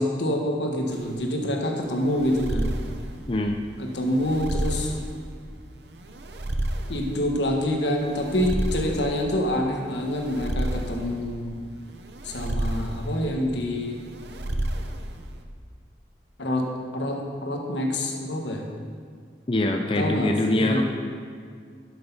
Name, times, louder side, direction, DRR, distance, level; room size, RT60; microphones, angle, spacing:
voice 1, 0.0-2.7 3.8-5.0 6.9-11.6 12.2-14.0 16.4-18.7 20.0-20.8, left 1 dB, 80° left, 1 dB, 1.5 m, -26 dB
sound 1, 0.9-15.4, right 1 dB, 70° right, 0.8 m, -32 dB
voice 2, 3.3-3.6 19.5-20.8, left 1 dB, 30° left, 3 dB, 0.5 m, -23 dB
12.0 x 6.7 x 5.6 m, 2.1 s
head